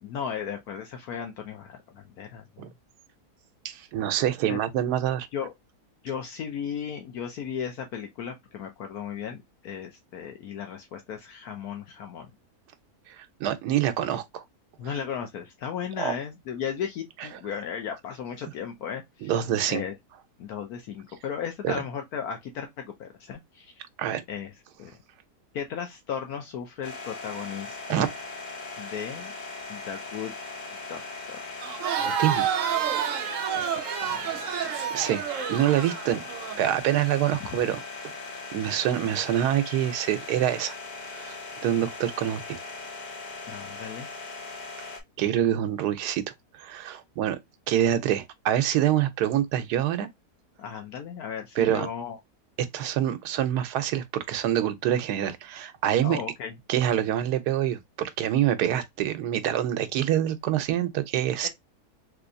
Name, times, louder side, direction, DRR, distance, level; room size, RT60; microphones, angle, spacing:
voice 1, 0.0-2.7 4.5-4.6 5.3-5.5 6.0-12.3 14.8-19.3 19.7-19.9 20.4-23.7 24.3-24.5 24.8-24.9 25.5-28.1 28.8-29.3 29.7-30.3 30.9-31.0 31.3-31.7 33.5-34.3 34.6-34.7 43.5-44.1 50.6-52.2 56.0-56.5 61.4-61.5, left 7 dB, 70° left, 1.2 m, -35 dB
voice 2, 3.6-5.3 13.1-14.4 16.0-16.1 17.2-17.3 19.2-19.8 21.6-21.8 24.0-24.2 27.9-28.1 32.0-32.5 34.9-35.2 35.5-36.2 36.6-38.2 38.5-40.7 41.1-41.4 41.6-42.6 45.2-46.2 46.5-47.4 47.7-50.1 51.6-51.9 52.7-56.2 56.7-61.5, right 11 dB, 80° right, 1.2 m, -26 dB
sound 1, 26.8-45.0, left 3 dB, 45° left, 0.6 m, -39 dB
Crowd, 31.6-36.6, right 8 dB, 65° right, 0.9 m, -29 dB
3.4 x 3.1 x 2.5 m
omnidirectional pair, 1.7 m